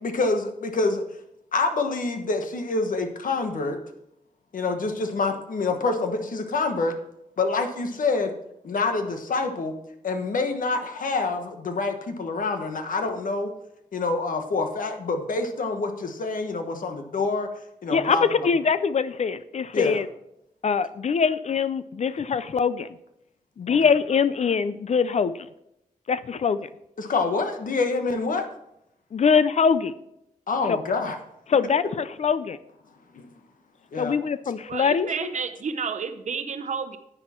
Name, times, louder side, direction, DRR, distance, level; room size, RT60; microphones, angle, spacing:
voice 1, 0.0-1.0 1.5-3.8 4.5-7.0 7.4-8.3 8.6-9.7 10.0-13.5 13.9-17.5 17.8-18.3 19.7-20.0 23.7-23.8 27.0-28.4 30.5-31.2 33.1-33.3 33.9-34.1 35.2-35.3, left 3 dB, 80° left, 6 dB, 1.4 m, -26 dB
voice 2, 17.9-20.1 20.6-23.0 23.6-25.5 26.1-26.7 29.1-29.9 30.6-30.8 31.5-32.6 34.0-35.1, left 6 dB, 55° left, 15 dB, 0.5 m, -23 dB
voice 3, 34.7-37.0, right 5 dB, 60° right, 10 dB, 0.9 m, -30 dB
10.5 x 9.7 x 4.4 m, 0.82 s
wide cardioid pair, 160°, 14 cm